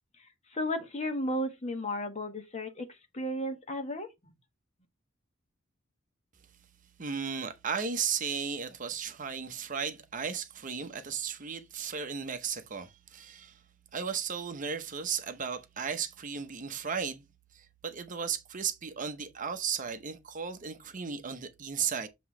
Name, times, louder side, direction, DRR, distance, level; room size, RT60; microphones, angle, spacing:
voice 1, 0.5-2.9 3.1-4.1, left 1 dB, 35° left, 1.4 m, -33 dB
voice 2, 7.0-13.6 13.9-17.2 17.5-22.1, right 6 dB, 40° right, 0.8 m, -35 dB
7.7 x 3.0 x 4.8 m
head